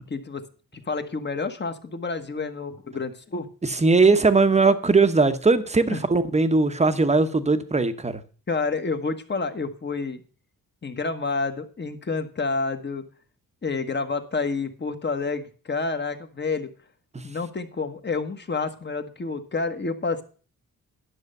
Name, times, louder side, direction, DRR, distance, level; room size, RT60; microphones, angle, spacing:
voice 1, 0.1-0.5 0.7-3.5 5.9-6.1 8.5-10.2 10.8-13.1 13.6-16.7 17.2-20.2, left 4 dB, 30° left, 1.4 m, -29 dB
voice 2, 3.8-8.2, right 3 dB, 20° right, 1.0 m, -19 dB
11.0 x 6.5 x 6.6 m
cardioid pair, 95°, 35 cm